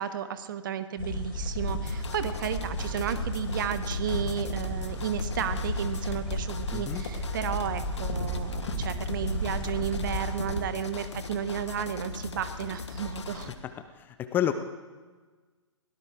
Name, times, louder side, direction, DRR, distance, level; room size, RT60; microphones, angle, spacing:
voice 1, 0.0-13.5, right 9 dB, 40° right, 12 dB, 1.1 m, -33 dB
sound 1, 1.0-10.7, left 1 dB, 45° left, 3.9 m, -33 dB
sound 2, 1.7-13.6, left 4 dB, 60° left, 1.4 m, -39 dB
voice 2, 6.7-7.1 13.6-14.5, left 11 dB, 10° left, 9 dB, 0.5 m, -30 dB
22.5 x 17.0 x 3.6 m, 1.4 s
figure-of-eight pair, 125°, 16 cm